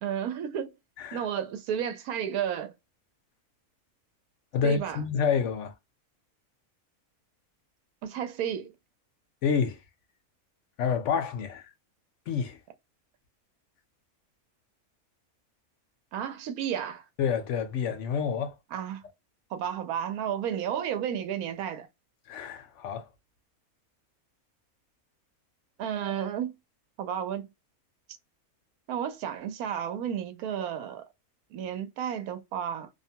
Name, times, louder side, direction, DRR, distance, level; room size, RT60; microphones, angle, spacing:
voice 1, 0.0-0.8 1.1-2.7 4.6-5.0 8.0-8.7 16.1-17.0 18.7-19.0 19.5-21.9 25.8-26.5 27.0-27.5 28.9-31.1 31.5-32.9, right 9 dB, 80° right, 1.1 m, -32 dB
voice 2, 4.5-5.7 9.4-9.8 10.8-11.6 12.3-12.6 17.2-18.6 22.3-23.1, left 6 dB, 65° left, 0.8 m, -28 dB
2.7 x 2.1 x 2.7 m
omnidirectional pair, 1.5 m